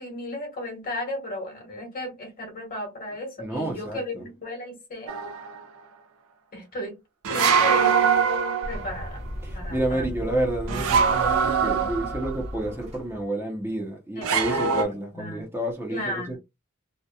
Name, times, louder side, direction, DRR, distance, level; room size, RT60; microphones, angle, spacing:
voice 1, 0.0-5.1 6.5-7.0 7.3-8.0 8.7-9.2 9.5-10.3 14.2-14.8 15.1-15.5 15.9-16.4, left 1 dB, 40° left, 1.2 m, -35 dB
voice 2, 3.4-4.3 9.4-16.4, right 1 dB, 10° right, 0.6 m, -30 dB
sound 1, 5.1-5.6 7.2-9.0 10.7-12.4 14.2-14.8, right 6 dB, 65° right, 0.5 m, -23 dB
sound 2, 8.6-13.3, equal, 30° right, 0.9 m, -36 dB
2.8 x 2.2 x 2.2 m
head